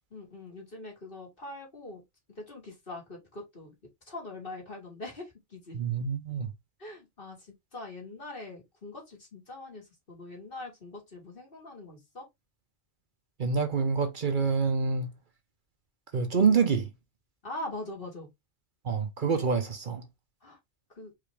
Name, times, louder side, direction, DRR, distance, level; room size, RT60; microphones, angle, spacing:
voice 1, 0.1-2.0 2.4-3.8 4.1-5.8 6.8-12.3 17.4-18.3 20.4-20.6 21.0-21.1, left 2 dB, 60° left, 2.4 m, -42 dB
voice 2, 5.7-6.5 13.4-15.1 16.1-16.9 18.8-20.0, right 5 dB, 55° right, 1.0 m, -26 dB
4.9 x 2.9 x 3.3 m
omnidirectional pair, 1.1 m